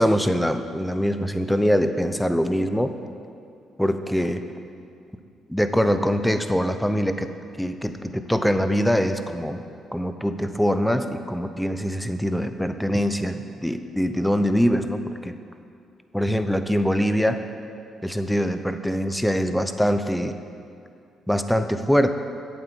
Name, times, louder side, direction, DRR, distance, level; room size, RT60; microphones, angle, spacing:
voice 1, 0.0-2.9 3.8-4.4 5.5-7.3 7.6-9.6 9.9-15.3 16.1-17.4 18.0-20.4 21.3-22.1, equal, 5° left, 9 dB, 0.7 m, -23 dB
8.5 x 7.8 x 8.1 m, 2.4 s
cardioid pair, 90°, 0 cm